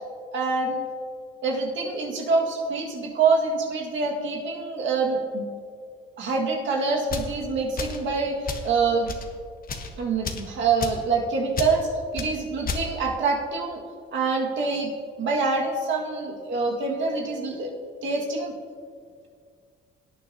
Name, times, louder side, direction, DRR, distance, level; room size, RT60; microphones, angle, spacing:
voice 1, 0.3-0.8 1.4-5.5 6.2-9.1 10.0-13.8 14.1-14.9 15.2-17.7 18.0-18.5, right 4 dB, 70° right, -1 dB, 2.0 m, -25 dB
sound 1, 7.0-7.3 7.8-8.0 8.5-8.7 9.0-9.3 9.6-9.9 10.2-10.5 10.8-11.0 11.5-11.7 12.2-12.3 12.6-12.9, left 4 dB, 45° left, 1.2 m, -31 dB
18.0 x 9.0 x 2.9 m, 2.1 s
cardioid pair, 90°, 20 cm